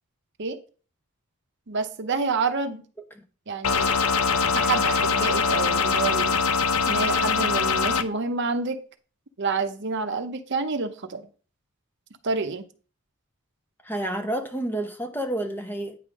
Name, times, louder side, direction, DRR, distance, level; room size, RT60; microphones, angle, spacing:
voice 1, 1.7-2.8 3.5-3.9 4.5-6.4 6.9-8.8 9.4-11.2 12.2-12.7, right 4 dB, 55° right, 0.7 m, -28 dB
sound 1, 3.6-8.0, left 5 dB, 85° left, 0.6 m, -23 dB
voice 2, 13.8-16.0, right 1 dB, 10° left, 0.8 m, -29 dB
9.2 x 3.7 x 6.1 m
head